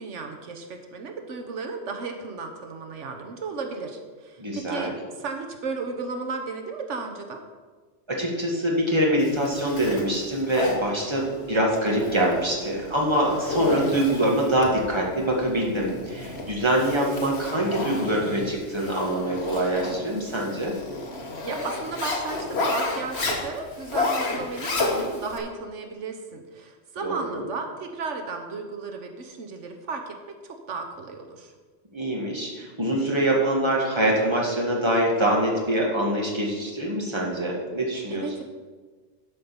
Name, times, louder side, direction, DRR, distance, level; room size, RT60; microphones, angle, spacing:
voice 1, 0.0-4.9 5.2-7.4 21.4-30.1 30.4-31.5 38.1-38.4, right 4 dB, 85° right, 4 dB, 1.3 m, -34 dB
voice 2, 4.4-4.9 8.1-20.7 27.0-27.5 31.9-38.3, right 1 dB, 25° right, -2 dB, 2.0 m, -24 dB
Zipper (clothing), 9.2-25.4, left 2 dB, 60° left, 1.8 m, -31 dB
11.5 x 5.5 x 7.0 m, 1.4 s
omnidirectional pair, 1.2 m